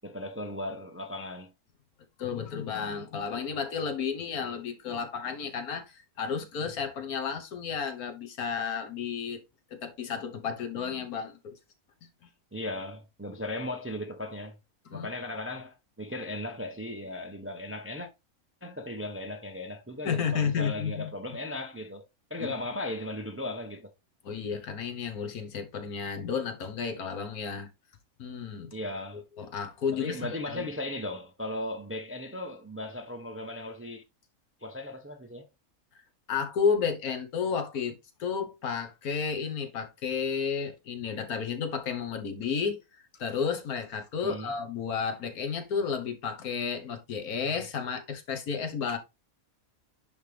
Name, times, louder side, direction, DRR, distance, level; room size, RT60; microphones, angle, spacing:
voice 1, 0.0-1.5 12.5-14.6 14.9-18.1 18.6-23.9 28.7-29.2 29.9-34.0 34.6-35.5 44.2-44.5, left 1 dB, 15° right, 0.5 m, -37 dB
voice 2, 2.2-9.4 9.7-11.5 14.9-15.1 20.0-21.1 24.2-27.7 28.2-28.7 29.4-30.7 36.3-42.8 43.2-49.0, left 6 dB, 85° left, 1.7 m, -32 dB
10.0 x 3.5 x 3.3 m
omnidirectional pair, 1.5 m